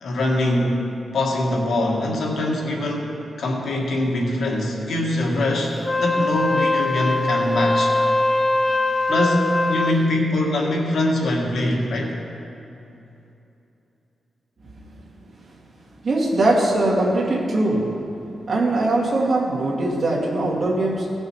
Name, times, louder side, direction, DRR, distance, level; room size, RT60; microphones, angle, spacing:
voice 1, 0.0-0.8 1.1-5.7 6.0-7.9 9.1-12.2, left 1 dB, 75° left, -1 dB, 1.7 m, -23 dB
Wind instrument woodwind instrument, 5.8-10.0, left 2 dB, 35° left, 0.4 m, -22 dB
voice 2, 16.0-17.9 18.5-21.1, right 2 dB, 50° right, -3 dB, 2.2 m, -21 dB
16.5 x 6.5 x 4.7 m, 2.8 s
wide cardioid pair, 120°, 0 cm